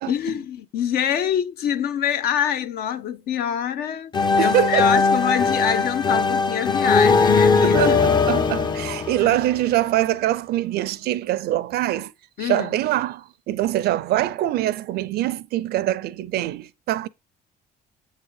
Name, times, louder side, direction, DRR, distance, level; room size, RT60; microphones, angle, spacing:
voice 1, 0.1-8.0 9.2-9.4 12.4-12.7, left 9 dB, 65° left, 0.6 m, -25 dB
sound 1, 4.1-9.9, left 4 dB, 25° left, 0.5 m, -19 dB
voice 2, 4.4-4.9 7.6-12.1 12.4-17.1, right 14 dB, 70° right, 0.5 m, -24 dB
7.9 x 3.7 x 4.6 m
cardioid pair, 110°, 17 cm